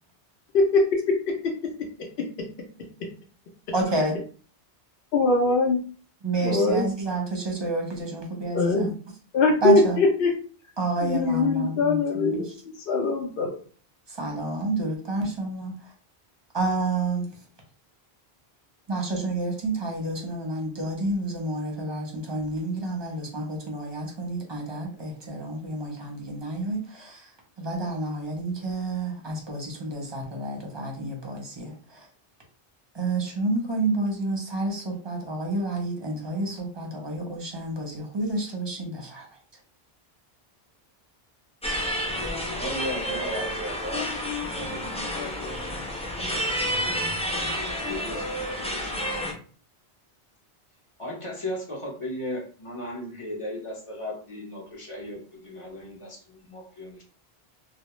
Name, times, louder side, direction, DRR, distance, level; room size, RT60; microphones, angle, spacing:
voice 1, 3.7-4.2 6.2-8.9 9.6-10.0 10.8-12.6 14.1-15.9 16.5-17.3 18.9-32.1 32.9-39.3, right 2 dB, 30° right, -1 dB, 0.6 m, -29 dB
voice 2, 5.1-5.8 6.4-6.9 8.5-8.9 9.3-10.3 11.0-12.5 12.9-13.5, left 3 dB, 65° left, -1 dB, 0.8 m, -21 dB
sound 1, 41.6-49.3, equal, 10° left, 0.3 m, -30 dB
voice 3, 42.5-45.6 46.1-49.4 51.0-57.0, equal, 35° left, -2 dB, 0.7 m, -37 dB
2.3 x 2.0 x 2.9 m, 0.41 s
omnidirectional pair, 1.0 m